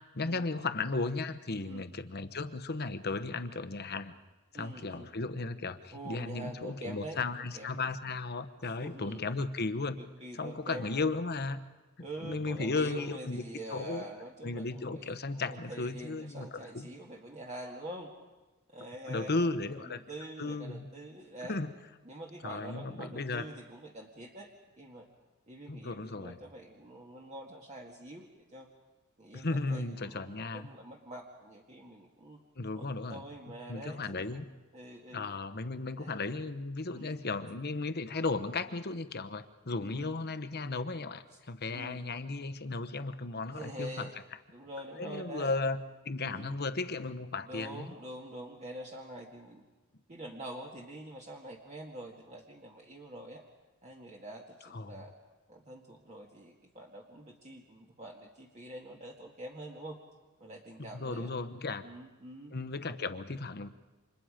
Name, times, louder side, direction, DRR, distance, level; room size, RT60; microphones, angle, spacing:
voice 1, 0.1-4.1 4.5-10.0 10.3-11.6 12.0-13.4 13.7-14.0 14.4-16.9 19.1-20.0 20.4-20.9 21.5-21.7 22.4-23.4 25.7-26.4 29.3-30.7 32.6-33.2 33.7-34.5 35.1-44.1 45.0-45.8 46.0-47.9 54.7-55.0 60.8-61.8 62.5-63.7, left 3 dB, 50° left, 11 dB, 1.1 m, -35 dB
voice 2, 4.5-5.1 5.9-7.2 7.5-7.8 8.6-9.2 10.0-11.1 12.0-18.1 18.7-19.4 19.8-21.6 22.1-24.5 24.8-25.1 25.5-28.7 29.2-32.4 32.7-34.4 34.7-35.3 36.0-36.2 36.9-37.1 39.8-40.1 41.7-42.0 43.5-44.1 44.5-45.5 46.2-46.5 47.5-49.6 50.1-53.4 53.8-55.1 55.5-60.0 60.4-61.3 61.8-62.5, right 1 dB, 35° right, 0 dB, 1.9 m, -45 dB
29.0 x 26.5 x 5.1 m, 1.1 s
head